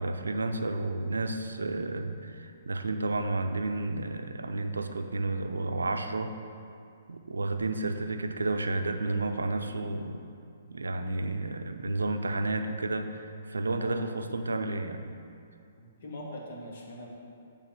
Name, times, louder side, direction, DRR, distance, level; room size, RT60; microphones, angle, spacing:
voice 1, 0.0-6.3 7.1-10.3 10.7-15.2, right 2 dB, 85° right, 7 dB, 0.5 m, -31 dB
voice 2, 13.8-14.1 15.8-17.1, left 1 dB, 60° left, -2 dB, 1.5 m, -42 dB
8.1 x 3.5 x 5.6 m, 2.4 s
hypercardioid pair, 125°, 0 cm